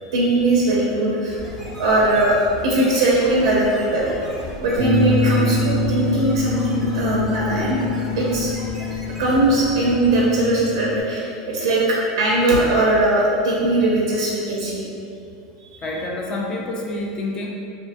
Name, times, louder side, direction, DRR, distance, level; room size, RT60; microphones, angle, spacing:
voice 1, 0.1-1.4 1.8-2.4 2.6-4.1 4.6-7.8 8.2-8.5 9.2-14.8 15.6-15.9, right 2 dB, 85° right, -4 dB, 0.4 m, -20 dB
sound 1, 1.3-10.5, equal, 5° right, 0.6 m, -36 dB
Bass guitar, 4.8-11.0, left 3 dB, 60° left, 0.7 m, -25 dB
voice 2, 15.8-17.5, left 2 dB, 30° left, -2 dB, 0.3 m, -27 dB
2.5 x 2.2 x 2.6 m, 2.6 s
supercardioid pair, 130°, 3 cm